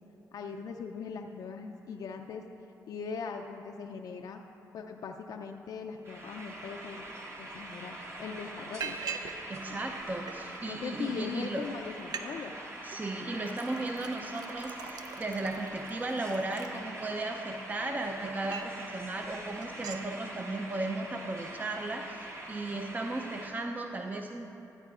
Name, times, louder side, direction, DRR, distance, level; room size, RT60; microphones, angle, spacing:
voice 1, 0.3-2.4 2.9-4.4 4.7-7.1 7.4-9.0 9.7-9.8 10.7-12.5, left 5 dB, 70° left, 3 dB, 0.4 m, -40 dB
sound 1, 6.1-23.5, right 1 dB, 40° right, 1.1 m, -44 dB
Liquid, 7.6-7.7 8.1-8.3 8.8-9.4 9.7-10.6 11.3-11.4 11.7-11.8 12.0-12.3 12.6-13.0 13.5-17.3 17.8-18.8 19.2-19.4 19.6-20.1, right 6 dB, 75° right, 0.5 m, -42 dB
voice 2, 9.5-11.6 12.8-24.5, right 2 dB, 25° right, 3 dB, 0.5 m, -36 dB
14.0 x 8.9 x 2.4 m, 3.0 s
cardioid pair, 65°, 7 cm